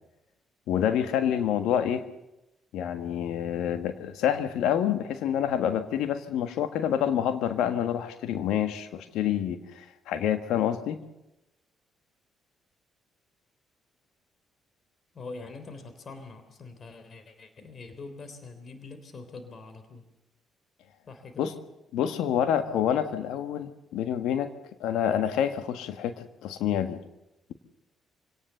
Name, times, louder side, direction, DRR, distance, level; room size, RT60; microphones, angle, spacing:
voice 1, 0.7-2.0 2.7-11.0 21.4-21.5 21.9-24.5 24.8-27.0, left 9 dB, 75° left, 9 dB, 1.5 m, -27 dB
voice 2, 15.1-20.1 21.1-21.5, left 3 dB, 50° left, 9 dB, 3.6 m, -44 dB
25.5 x 18.0 x 7.1 m, 0.94 s
hypercardioid pair, 50°, 0 cm